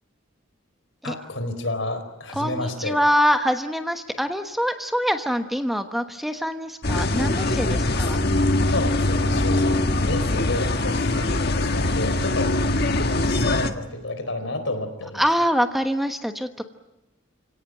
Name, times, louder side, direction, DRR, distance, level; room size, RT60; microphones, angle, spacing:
voice 1, 1.0-3.0 8.7-12.6 13.3-15.2, left 2 dB, 75° left, 8 dB, 4.2 m, -30 dB
voice 2, 2.3-8.2 15.1-16.6, equal, ahead, 7 dB, 1.1 m, -24 dB
sound 1, 6.8-13.7, left 2 dB, 55° left, 1.5 m, -22 dB
29.5 x 18.0 x 9.1 m, 1.0 s
head